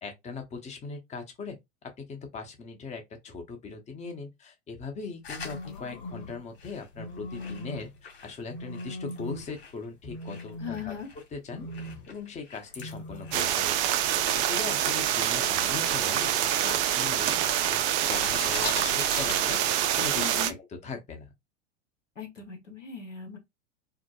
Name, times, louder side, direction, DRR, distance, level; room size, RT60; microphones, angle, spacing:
voice 1, 0.0-7.9 8.2-10.9 11.3-11.7 12.1-13.8 14.2-21.3, left 4 dB, 20° left, 0.8 m, -40 dB
sound 1, 5.2-9.8 10.2-14.3 14.8-16.0 16.4-17.6 17.9-20.0, left 5 dB, 60° left, 1.8 m, -42 dB
sound 2, 5.3-6.4 6.9-8.0 8.5-9.6 10.0-11.1 11.5-12.2 12.7-13.5, left 1 dB, 40° left, 1.5 m, -40 dB
voice 2, 10.6-11.1 20.1-20.5 22.2-23.4, left 7 dB, 85° left, 1.2 m, -38 dB
sound 3, 13.3-20.5, right 11 dB, 35° right, 0.5 m, -26 dB
4.6 x 2.1 x 2.3 m
figure-of-eight pair, 90°, 36 cm